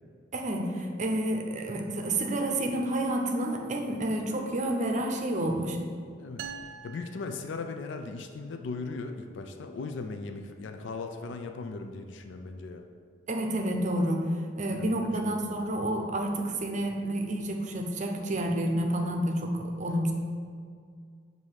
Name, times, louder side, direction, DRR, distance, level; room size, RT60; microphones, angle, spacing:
voice 1, 0.3-5.8 13.3-14.2 14.6-20.1, right 1 dB, 40° right, 3 dB, 0.6 m, -29 dB
sound 1, 6.4-8.2, right 7 dB, 90° right, 0.3 m, -44 dB
voice 2, 6.8-12.9 14.7-15.5, left 3 dB, 75° left, 6 dB, 0.4 m, -38 dB
7.3 x 2.7 x 4.7 m, 2.1 s
head